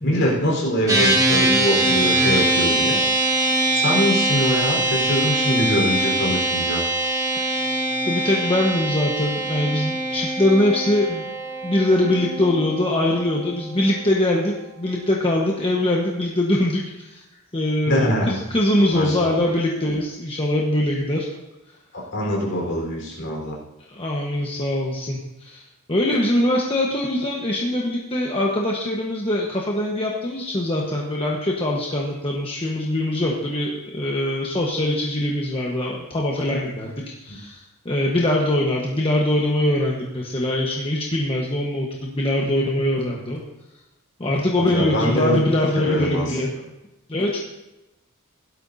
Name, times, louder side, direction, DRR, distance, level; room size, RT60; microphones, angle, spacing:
voice 1, 0.0-3.0 3.7-6.8 17.9-18.3 18.9-19.4 21.9-23.6 44.6-45.4 45.8-46.4, equal, 55° left, -2 dB, 4.3 m, -23 dB
sound 1, 0.9-14.4, right 2 dB, 15° right, 2.1 m, -23 dB
voice 2, 8.0-11.3 11.6-17.2 17.5-21.3 23.9-25.6 25.9-36.9 37.2-43.4 44.2-46.5 47.1-47.4, left 1 dB, 25° left, -2 dB, 1.2 m, -22 dB
16.5 x 12.5 x 2.8 m, 1.0 s
head